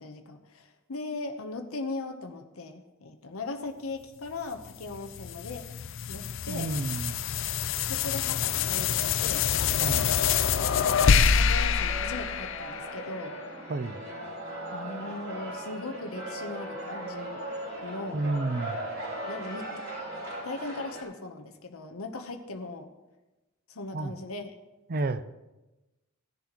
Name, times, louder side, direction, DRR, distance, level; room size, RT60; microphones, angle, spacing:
voice 1, 0.0-5.7 6.1-6.8 7.8-9.5 10.6-13.4 14.7-17.5 17.8-18.2 19.2-19.7 20.4-22.9 23.7-24.5, left 3 dB, 80° left, 5 dB, 1.0 m, -39 dB
sound 1, 4.6-13.2, left 7 dB, 65° left, 0.5 m, -26 dB
voice 2, 6.5-7.2 9.8-10.1 13.7-14.0 18.1-18.8 23.9-24.1 24.9-25.2, right 2 dB, 45° right, 13 dB, 0.5 m, -31 dB
sound 2, 11.5-21.0, right 1 dB, 75° right, 4.9 m, -38 dB
17.5 x 10.5 x 3.0 m, 1.1 s
head